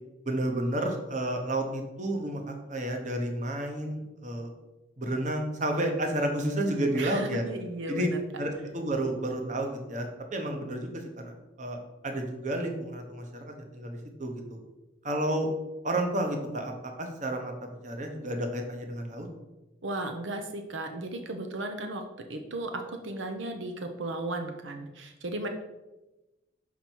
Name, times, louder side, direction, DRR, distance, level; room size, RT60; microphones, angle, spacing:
voice 1, 0.3-4.5 5.0-7.4 7.9-8.1 8.4-11.8 12.0-14.6 15.0-15.5 15.8-17.5 17.8-19.3, right 1 dB, 40° right, 3 dB, 1.0 m, -31 dB
voice 2, 6.9-8.2 19.8-22.0 22.3-25.5, right 2 dB, 80° right, 5 dB, 0.7 m, -35 dB
6.0 x 5.5 x 4.5 m, 1.0 s
head